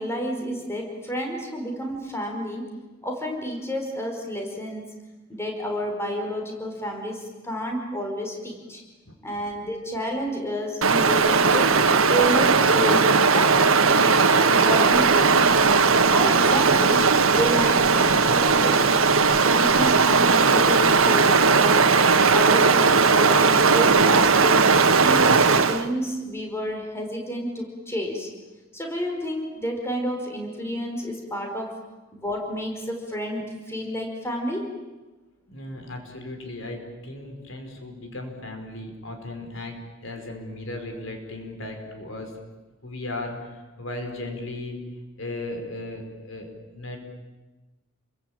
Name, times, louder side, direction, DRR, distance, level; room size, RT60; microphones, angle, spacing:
voice 1, 0.0-2.7 3.0-4.8 5.3-8.8 9.2-11.7 12.1-13.0 13.3-15.6 16.1-18.8 19.4-21.9 22.3-24.6 25.0-28.3 28.7-31.7 32.1-34.7, equal, 15° left, 2 dB, 5.1 m, -30 dB
Stream, 10.8-25.9, right 4 dB, 85° right, 1.6 m, -18 dB
voice 2, 35.5-42.3 42.8-44.8 45.1-47.0, left 2 dB, 65° left, 4 dB, 5.0 m, -36 dB
30.0 x 22.5 x 8.9 m, 1.2 s
head